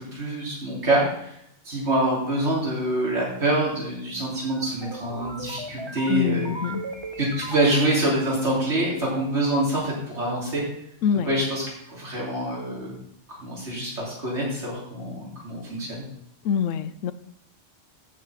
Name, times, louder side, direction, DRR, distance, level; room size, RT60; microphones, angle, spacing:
voice 1, 0.0-1.4 1.6-6.5 7.2-10.6 11.3-12.9 13.3-16.0, right 1 dB, 65° right, -5 dB, 3.6 m, -26 dB
sound 1, 4.3-8.5, right 2 dB, 25° right, 0.9 m, -38 dB
voice 2, 6.1-6.8 11.0-11.3 16.4-17.1, left 7 dB, 90° left, 15 dB, 1.0 m, -25 dB
9.5 x 5.7 x 8.3 m, 0.75 s
omnidirectional pair, 1.2 m